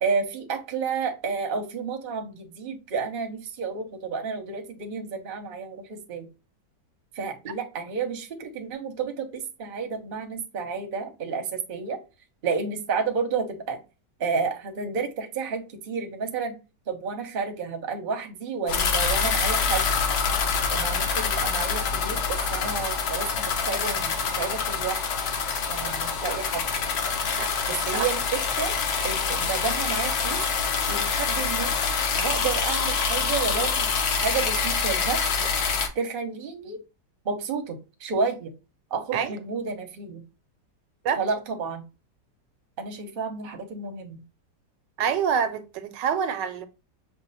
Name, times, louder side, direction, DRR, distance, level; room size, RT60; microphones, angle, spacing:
voice 1, 0.0-6.3 7.1-12.0 12.4-13.8 14.2-16.5 16.9-19.9 20.7-25.0 25.7-26.6 27.7-28.7 29.0-30.4 30.9-31.7 32.2-35.5 35.9-36.8 37.2-38.5 38.9-40.2 41.2-41.8 42.8-44.2, right 5 dB, 45° right, 0.8 m, -31 dB
sound 1, 18.7-35.9, left 5 dB, 65° left, 1.2 m, -26 dB
voice 2, 45.0-46.7, right 7 dB, 80° right, 1.2 m, -26 dB
6.0 x 2.1 x 4.1 m
omnidirectional pair, 1.9 m